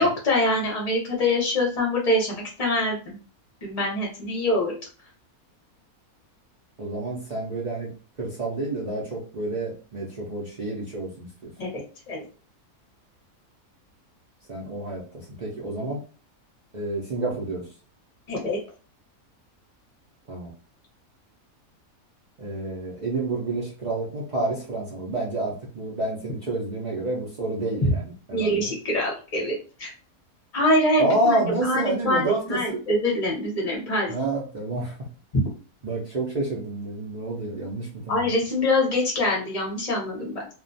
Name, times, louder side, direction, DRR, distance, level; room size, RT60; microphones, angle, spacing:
voice 1, 0.0-3.2 3.6-4.7 11.6-12.2 18.3-18.6 27.8-27.9 28.3-29.9 30.5-34.1 35.3-35.5 38.1-40.5, left 1 dB, 35° left, -3 dB, 0.7 m, -24 dB
voice 2, 6.8-7.9 8.2-11.5 14.5-16.0 16.7-17.6 20.3-20.5 22.4-28.7 31.0-32.8 34.1-35.1 35.8-38.3, right 2 dB, 70° right, -4 dB, 0.4 m, -29 dB
2.4 x 2.1 x 2.6 m, 0.37 s
omnidirectional pair, 1.5 m